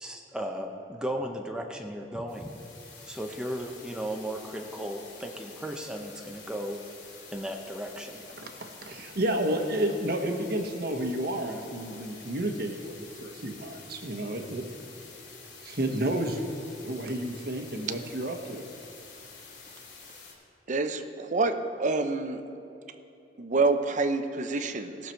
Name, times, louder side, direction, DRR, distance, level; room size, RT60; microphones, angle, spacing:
voice 1, 0.0-2.5 3.1-6.8 7.3-8.2, equal, 5° right, 2 dB, 0.6 m, -35 dB
sound 1, 2.3-20.3, left 4 dB, 80° left, 2.9 m, -48 dB
voice 2, 8.4-14.7 15.6-16.4 16.8-18.7, right 1 dB, 60° right, 5 dB, 1.1 m, -31 dB
voice 3, 20.7-22.4 23.4-25.1, right 3 dB, 45° right, 8 dB, 0.6 m, -27 dB
18.5 x 6.7 x 4.5 m, 2.9 s
head